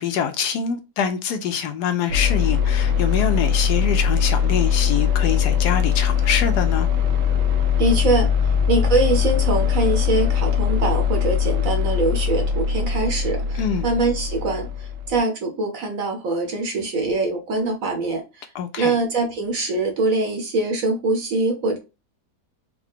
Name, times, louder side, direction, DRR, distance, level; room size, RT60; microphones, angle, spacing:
voice 1, 0.0-6.9 13.5-13.8 18.5-18.9, left 7 dB, 75° left, 1.1 m, -25 dB
sound 1, 2.1-15.2, left 7 dB, 80° right, 1.3 m, -21 dB
voice 2, 7.8-8.3 8.7-18.5 18.8-21.8, right 3 dB, 55° right, 1.2 m, -23 dB
4.6 x 2.1 x 3.5 m
omnidirectional pair, 1.9 m